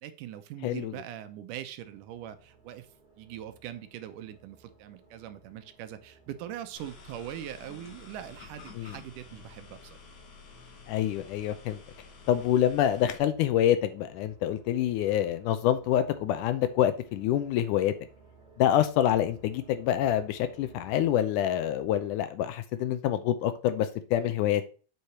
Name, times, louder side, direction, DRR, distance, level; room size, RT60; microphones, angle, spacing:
voice 1, 0.0-2.9 3.2-10.0, right 11 dB, 80° right, 2.2 m, -42 dB
voice 2, 0.6-0.9 8.8-9.0 10.9-11.8 12.3-17.9 18.6-24.6, left 11 dB, 80° left, 2.0 m, -26 dB
sound 1, 1.8-21.1, right 4 dB, 20° right, 3.7 m, -58 dB
sound 2, 6.8-13.2, left 5 dB, 55° left, 1.2 m, -51 dB
8.2 x 4.7 x 4.2 m
omnidirectional pair, 3.9 m